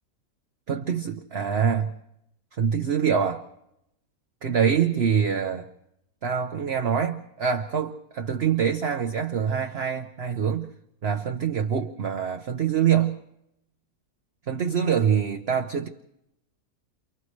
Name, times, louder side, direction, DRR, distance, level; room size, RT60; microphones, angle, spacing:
voice 1, 0.7-1.9 2.6-3.4 4.4-5.7 6.2-10.7 11.0-13.2 14.5-15.9, right 7 dB, 45° right, 5 dB, 0.9 m, -25 dB
29.5 x 29.0 x 3.2 m, 0.82 s
omnidirectional pair, 1.7 m